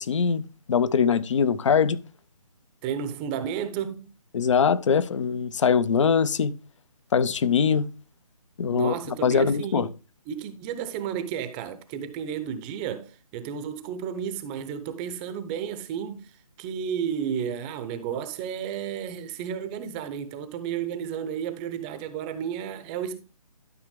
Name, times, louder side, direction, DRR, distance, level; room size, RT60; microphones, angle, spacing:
voice 1, 0.0-2.0 4.3-6.5 7.1-7.9 8.6-8.9 9.2-9.9, left 6 dB, 55° left, 0.7 m, -22 dB
voice 2, 2.8-4.1 8.7-9.9 10.3-23.2, right 8 dB, 15° right, 0.7 m, -32 dB
12.0 x 5.7 x 3.6 m
hypercardioid pair, 155°, 19 cm